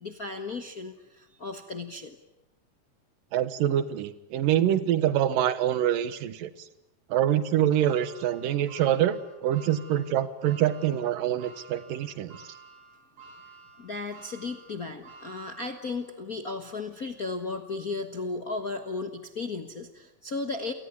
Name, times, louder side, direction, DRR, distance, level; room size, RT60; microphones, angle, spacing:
voice 1, 0.0-2.1 13.8-20.7, left 3 dB, 50° left, 6 dB, 1.1 m, -35 dB
voice 2, 3.3-6.5 7.1-12.4, right 11 dB, 85° right, 14 dB, 3.0 m, -25 dB
sound 1, 7.8-16.2 16.7-16.8 17.9-18.0, right 4 dB, 65° right, 5.8 m, -51 dB
29.0 x 19.0 x 9.8 m, 0.90 s
omnidirectional pair, 3.8 m